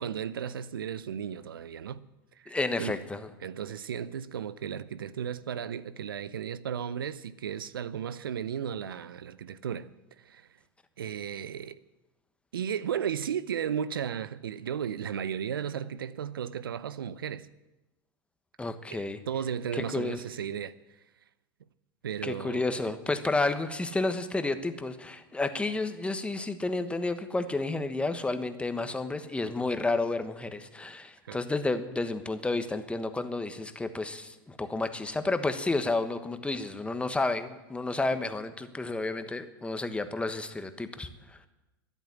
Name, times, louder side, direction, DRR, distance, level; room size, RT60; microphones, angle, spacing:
voice 1, 0.0-2.1 2.4-2.9 3.4-9.9 10.2-10.5 11.0-11.8 12.5-17.5 18.9-20.8 22.0-22.8 31.3-31.4, right 8 dB, 85° right, 0.6 m, -35 dB
voice 2, 2.5-3.3 18.6-19.2 19.7-20.2 22.2-41.1, left 2 dB, 10° left, 1.3 m, -31 dB
13.0 x 11.0 x 8.3 m
hypercardioid pair, 95°, 11 cm